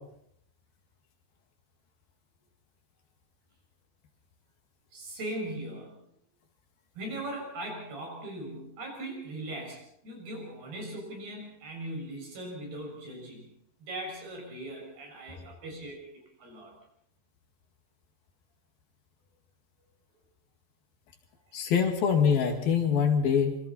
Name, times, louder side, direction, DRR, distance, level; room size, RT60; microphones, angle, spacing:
voice 1, 4.9-6.0 7.0-13.5 13.8-16.8, right 1 dB, 80° right, 1 dB, 8.8 m, -39 dB
voice 2, 21.5-23.6, left 7 dB, 70° left, 4 dB, 3.9 m, -24 dB
26.0 x 25.0 x 4.3 m, 0.74 s
omnidirectional pair, 4.5 m